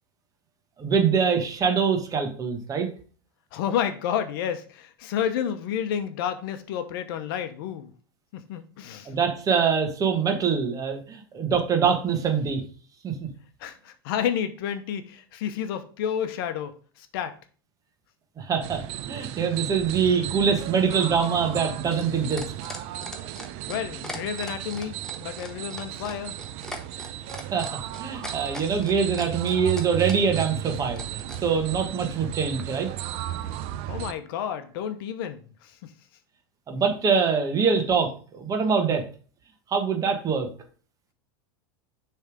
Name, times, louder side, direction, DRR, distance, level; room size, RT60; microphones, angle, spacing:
voice 1, 0.8-2.9 9.1-12.6 13.0-13.3 18.4-18.8 19.1-22.5 27.5-27.7 28.0-32.9 36.7-39.0 39.7-40.5, right 6 dB, 30° right, 1.3 m, -24 dB
voice 2, 3.5-7.9 8.3-9.1 13.6-17.4 23.7-26.4 33.9-35.9, left 9 dB, 65° left, 0.8 m, -30 dB
sound 1, 18.6-34.1, right 12 dB, 50° right, 0.5 m, -35 dB
sound 2, 20.9-31.4 32.6-32.7, left 1 dB, 5° left, 1.1 m, -39 dB
6.4 x 3.4 x 4.9 m
hypercardioid pair, 110°, 13 cm